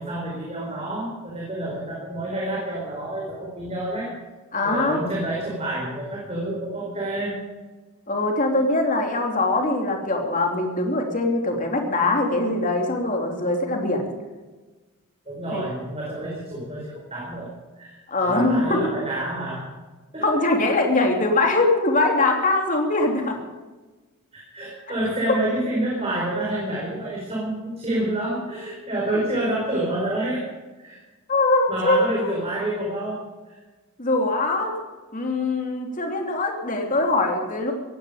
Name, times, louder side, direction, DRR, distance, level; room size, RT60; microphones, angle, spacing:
voice 1, 0.0-4.1 4.6-7.4 15.3-17.5 17.8-19.7 20.1-20.2 24.3-30.5 30.8-31.0 31.7-33.6, right 1 dB, 25° right, -4 dB, 4.7 m, -28 dB
voice 2, 4.5-5.0 8.1-14.1 15.5-15.6 18.1-18.8 20.2-23.4 29.1-29.2 31.3-32.3 34.0-34.8 35.1-37.7, left 2 dB, 35° left, 2 dB, 3.1 m, -22 dB
18.0 x 15.5 x 5.1 m, 1.3 s
head